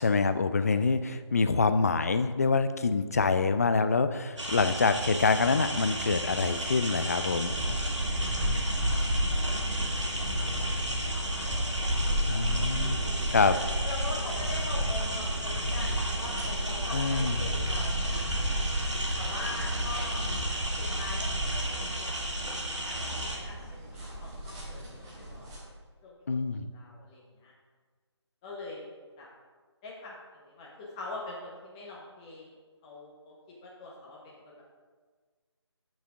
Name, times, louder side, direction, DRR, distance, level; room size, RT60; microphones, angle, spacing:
voice 1, 0.0-7.5 12.3-13.0 13.3-13.6 16.9-17.4 26.3-26.7, left 4 dB, 35° left, 10 dB, 0.4 m, -26 dB
sound 1, 4.4-23.4, right 1 dB, 85° right, 2.0 m, -34 dB
sound 2, 7.4-25.6, equal, 15° right, 1.5 m, -32 dB
voice 2, 9.3-12.5 12.8-18.7 19.1-20.3 20.8-22.3 22.8-25.7 26.0-26.1 26.5-27.5 28.4-28.9 29.2-29.3 29.8-32.5 32.8-33.3 33.6-34.6, left 2 dB, 15° left, -5 dB, 0.8 m, -43 dB
11.0 x 6.1 x 3.6 m, 1.5 s
figure-of-eight pair, 155°, 15 cm